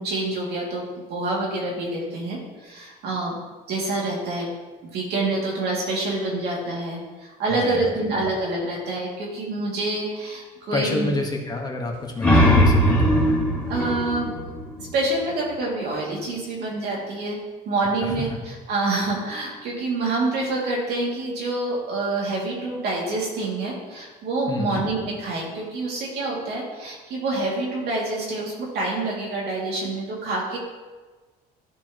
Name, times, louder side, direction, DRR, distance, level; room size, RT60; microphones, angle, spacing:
voice 1, 0.0-3.4 3.7-4.5 4.9-11.2 13.7-14.3 14.9-17.4 17.7-30.6, right 2 dB, 75° right, -3 dB, 2.5 m, -27 dB
voice 2, 7.5-7.9 10.7-13.1 18.0-18.4 24.5-24.8, left 2 dB, 25° left, 1 dB, 1.4 m, -29 dB
sound 1, 11.9-15.4, equal, 5° left, 2.1 m, -20 dB
13.0 x 4.7 x 3.0 m, 1.3 s
cardioid pair, 110°, 17 cm